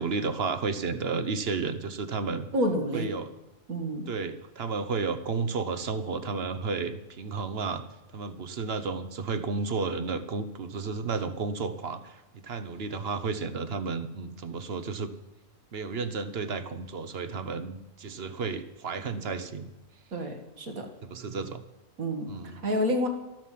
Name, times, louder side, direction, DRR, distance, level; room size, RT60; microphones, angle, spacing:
voice 1, 0.0-2.5 2.9-3.3 4.1-7.8 8.1-15.1 15.7-19.7 21.0-21.6 22.3-22.6, right 4 dB, 50° right, 11 dB, 1.1 m, -32 dB
voice 2, 2.5-3.1 3.7-4.1 20.1-20.9 22.0-22.3 22.6-23.1, equal, 80° right, 4 dB, 2.3 m, -28 dB
13.0 x 12.0 x 7.5 m, 1.0 s
omnidirectional pair, 1.4 m